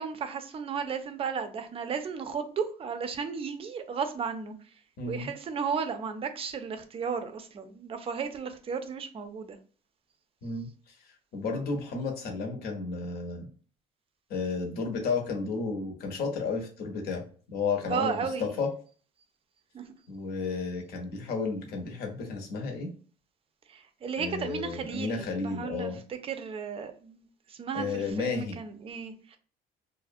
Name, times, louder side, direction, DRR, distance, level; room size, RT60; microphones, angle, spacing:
voice 1, 0.0-4.5 5.1-9.6 17.9-18.5 19.7-19.8 23.7-25.9 26.2-27.2 27.5-29.4, right 6 dB, 35° right, 0.4 m, -34 dB
voice 2, 5.0-5.3 10.4-10.7 11.3-13.5 14.3-18.7 20.1-22.9 24.2-26.0 27.7-28.6, left 4 dB, 70° left, 0.8 m, -32 dB
2.4 x 2.0 x 2.5 m
cardioid pair, 110°, 17 cm